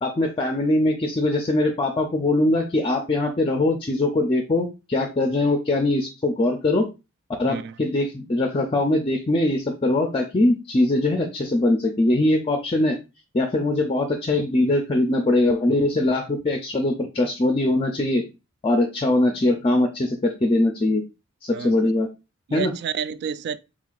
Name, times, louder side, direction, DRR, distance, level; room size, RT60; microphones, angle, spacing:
voice 1, 0.0-6.9 7.4-13.0 13.3-18.3 18.6-21.0 21.4-22.1 22.5-22.7, left 2 dB, 25° left, 0.4 m, -22 dB
voice 2, 21.5-21.9 22.5-23.6, right 7 dB, 55° right, 0.3 m, -30 dB
4.6 x 3.8 x 2.4 m
head